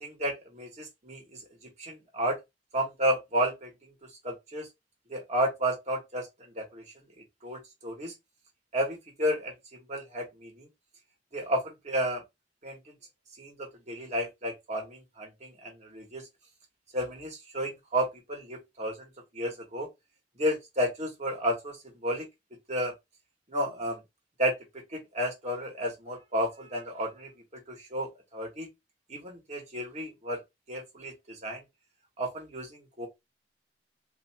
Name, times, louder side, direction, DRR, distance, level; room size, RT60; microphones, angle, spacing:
voice 1, 0.0-1.4 1.8-2.4 2.7-3.9 4.2-4.7 5.1-6.8 7.4-8.1 8.7-10.7 11.3-12.2 12.6-12.8 13.4-16.2 16.9-19.9 20.4-21.8 22.0-22.2 22.7-22.9 23.5-24.0 24.4-24.5 24.9-27.3 27.7-28.7 29.1-30.4 30.7-31.6 32.2-33.1, equal, 40° right, 1.3 m, -32 dB
2.7 x 2.4 x 4.1 m
head